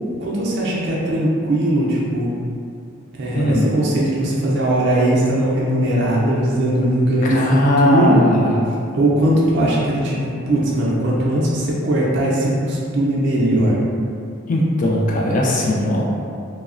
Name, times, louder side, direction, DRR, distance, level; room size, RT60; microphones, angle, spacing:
voice 1, 0.2-2.3 3.1-8.2 8.9-13.8, right 1 dB, 55° right, -5 dB, 0.4 m, -19 dB
voice 2, 3.3-3.7 7.2-8.6 14.5-16.1, left 1 dB, 35° left, -2 dB, 0.3 m, -18 dB
3.0 x 2.0 x 2.4 m, 2.4 s
head